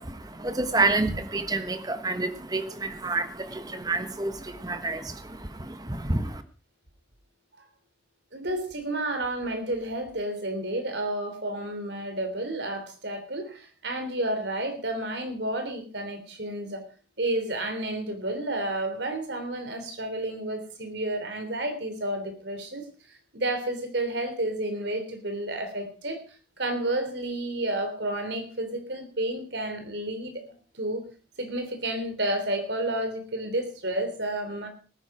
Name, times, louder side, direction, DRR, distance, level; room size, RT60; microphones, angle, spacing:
voice 1, 0.0-6.4, right 2 dB, 20° right, 10 dB, 1.2 m, -29 dB
voice 2, 8.3-16.8 17.2-26.2 26.6-30.4 30.7-31.0 31.4-34.7, right 1 dB, 70° right, 7 dB, 3.4 m, -31 dB
18.5 x 10.5 x 4.9 m, 0.37 s
head